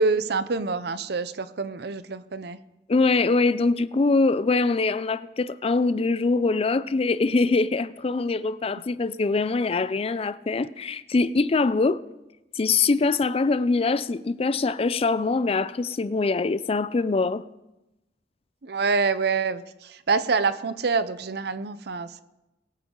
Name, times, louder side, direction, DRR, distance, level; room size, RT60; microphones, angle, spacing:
voice 1, 0.0-2.6 18.6-22.2, right 4 dB, 65° right, 0.7 m, -26 dB
voice 2, 2.9-12.0 12.6-17.4, left 3 dB, 35° left, 0.4 m, -23 dB
22.0 x 9.2 x 3.8 m
head